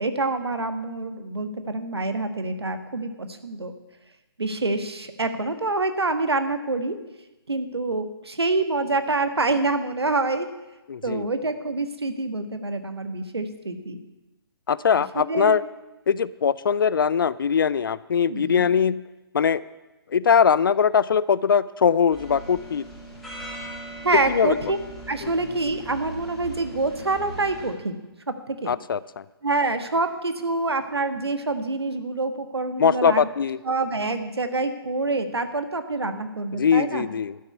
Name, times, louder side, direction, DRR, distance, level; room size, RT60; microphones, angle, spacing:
voice 1, 0.0-3.7 4.4-6.9 7.5-10.5 11.0-14.0 14.9-15.6 18.3-18.7 24.0-24.8 25.1-28.0 28.3-28.7 29.4-33.3 33.6-37.1, right 3 dB, 75° right, 9 dB, 1.4 m, -26 dB
voice 2, 10.9-11.3 14.7-15.6 16.1-19.0 19.3-19.6 20.1-22.8 24.3-24.6 25.2-25.3 28.7-29.2 32.8-33.6 36.6-37.4, left 7 dB, 55° left, 19 dB, 0.5 m, -21 dB
sound 1, 22.1-27.7, right 1 dB, ahead, 2.6 m, -39 dB
12.5 x 6.7 x 9.4 m, 1.0 s
figure-of-eight pair, 140°, 13 cm